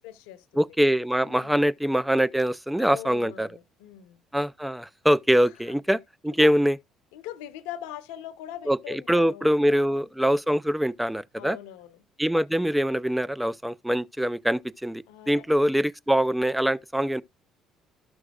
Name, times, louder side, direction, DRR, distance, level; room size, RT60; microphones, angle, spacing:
voice 1, 0.0-0.4 1.3-1.6 2.8-4.2 5.7-5.8 6.3-6.5 7.1-10.1 11.4-12.0 15.1-15.4, left 12 dB, 80° left, 0.8 m, -41 dB
voice 2, 0.5-3.5 4.3-6.8 8.7-11.6 12.2-17.2, equal, 5° right, 0.5 m, -24 dB
13.0 x 6.2 x 2.4 m
hypercardioid pair, 60°, 0 cm